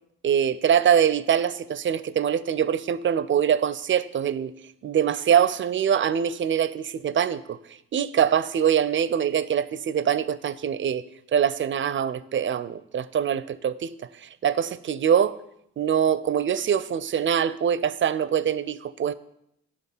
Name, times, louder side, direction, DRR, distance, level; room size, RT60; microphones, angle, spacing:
voice 1, 0.2-4.5 4.8-7.6 7.9-11.0 11.3-13.9 14.2-15.4 15.8-19.1, right 8 dB, 30° right, 0.5 m, -23 dB
11.0 x 3.8 x 5.5 m
hypercardioid pair, 40°, 38 cm